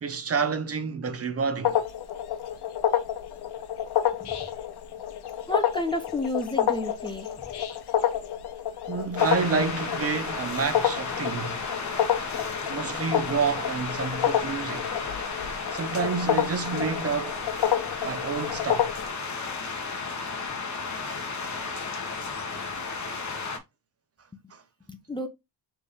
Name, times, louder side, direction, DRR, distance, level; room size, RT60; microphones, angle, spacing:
voice 1, 0.0-1.8 8.9-11.7 12.7-14.9 15.7-17.4 18.0-18.9 24.5-24.6, right 5 dB, 35° right, 0.7 m, -29 dB
sound 1, 1.6-19.1, left 10 dB, 75° left, 0.8 m, -29 dB
voice 2, 5.5-7.3 24.9-25.3, left 1 dB, 10° left, 0.5 m, -30 dB
sound 2, 9.2-23.6, left 4 dB, 45° left, 1.1 m, -34 dB
4.3 x 3.3 x 3.4 m
cardioid pair, 125°, 40 cm